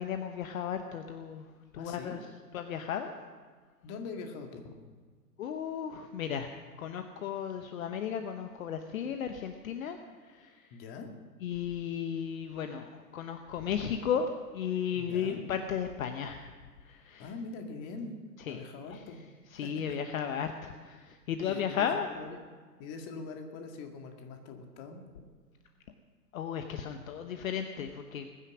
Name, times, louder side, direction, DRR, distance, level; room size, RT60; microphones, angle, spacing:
voice 1, 0.0-2.2 2.5-3.1 5.4-6.5 6.8-10.8 11.4-16.5 16.8-17.3 18.5-18.6 18.9-19.0 19.5-22.1 26.3-28.3, left 8 dB, 55° left, 7 dB, 1.1 m, -35 dB
voice 2, 1.7-2.2 3.8-4.8 10.7-11.1 14.9-15.5 17.2-18.2 18.5-19.2 19.6-20.0 21.4-22.4 22.8-25.2, left 4 dB, 30° left, 4 dB, 2.1 m, -43 dB
21.0 x 9.9 x 6.2 m, 1.6 s
figure-of-eight pair, 120°, 48 cm